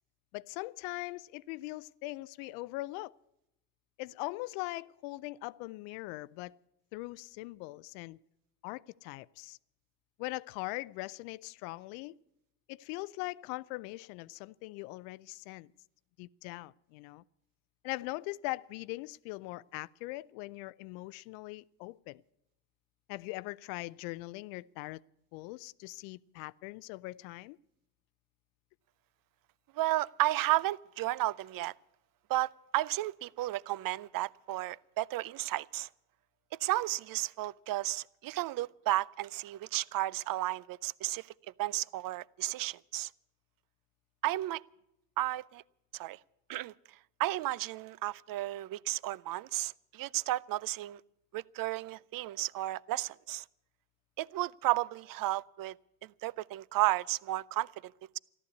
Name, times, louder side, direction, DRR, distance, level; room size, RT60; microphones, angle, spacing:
voice 1, 0.3-3.1 4.0-6.6 6.9-8.2 8.6-9.6 10.2-12.1 12.7-15.7 16.2-17.2 17.8-22.2 23.1-25.0 25.3-27.6, left 21 dB, 80° left, 0.6 m, -41 dB
voice 2, 29.8-31.7 32.3-35.9 36.6-41.3 41.6-43.1 44.2-44.6 45.2-45.6 45.9-46.2 46.5-46.7 47.2-51.0 51.3-53.4 54.2-55.7 56.0-58.2, right 16 dB, 45° right, 0.5 m, -33 dB
14.0 x 12.0 x 8.3 m
supercardioid pair, 75°, 48 cm